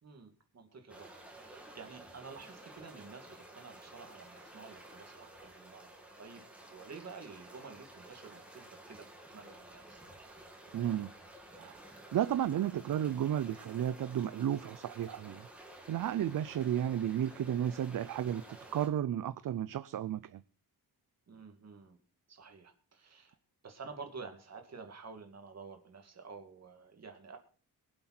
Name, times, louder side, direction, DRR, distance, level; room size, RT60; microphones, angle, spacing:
voice 1, 0.0-10.0 21.3-22.0 22.3-23.4 23.6-27.4, right 4 dB, 40° right, 2.4 m, -50 dB
sound 1, 0.9-18.9, right 1 dB, 5° right, 2.5 m, -53 dB
voice 2, 10.7-11.1 11.5-11.7 12.1-15.5 15.9-18.4 18.7-20.4, right 10 dB, 55° right, 0.5 m, -33 dB
23.5 x 7.8 x 4.3 m
wide cardioid pair, 180°, 39 cm